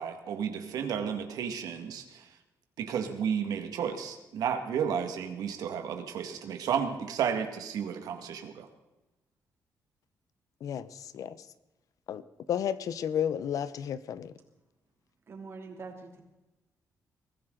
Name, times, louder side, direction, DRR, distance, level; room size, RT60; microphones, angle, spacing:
voice 1, 0.0-2.2 2.8-8.7, right 7 dB, 90° right, 6 dB, 1.9 m, -32 dB
voice 2, 10.6-11.5 12.1-12.2 12.5-14.3, left 9 dB, 70° left, 15 dB, 0.8 m, -32 dB
voice 3, 15.3-16.2, right 4 dB, 45° right, 3 dB, 3.0 m, -44 dB
22.5 x 15.0 x 3.9 m, 1.0 s
cardioid pair, 130°, 6 cm